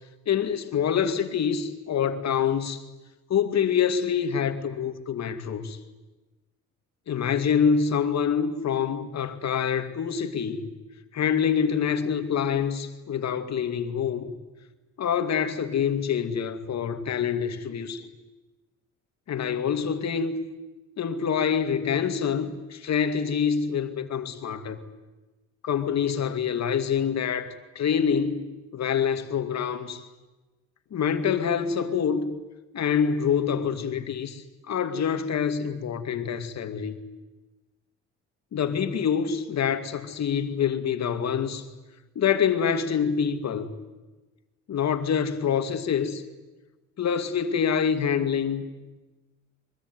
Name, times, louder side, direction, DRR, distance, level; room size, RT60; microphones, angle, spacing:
voice 1, 0.3-2.8 3.3-5.8 7.1-10.6 11.1-14.3 15.0-18.1 19.3-20.3 21.0-24.8 25.6-30.0 30.9-32.4 32.7-36.9 38.5-41.7 42.2-43.7 44.7-46.2 47.0-48.7, left 7 dB, 60° left, 2.5 m, -26 dB
23.5 x 22.5 x 9.7 m
cardioid pair, 90°, 30 cm